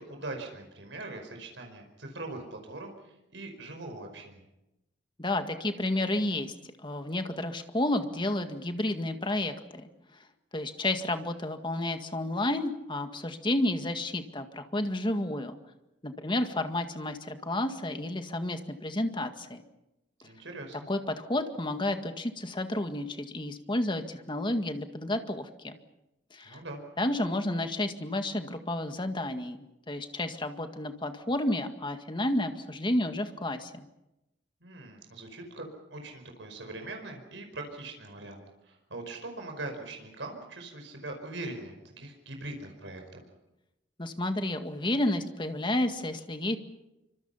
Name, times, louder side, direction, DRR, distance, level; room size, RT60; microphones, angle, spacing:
voice 1, 0.0-4.5 20.2-20.9 26.4-26.8 34.6-35.6 35.9-43.2, right 2 dB, 85° right, 3 dB, 5.2 m, -41 dB
voice 2, 5.2-6.5 6.8-9.9 10.5-15.6 16.0-19.6 20.9-25.8 26.3-26.6 27.0-29.6 29.9-33.9 44.0-46.6, left 1 dB, 25° left, 7 dB, 1.9 m, -31 dB
27.0 x 25.5 x 5.7 m, 0.91 s
head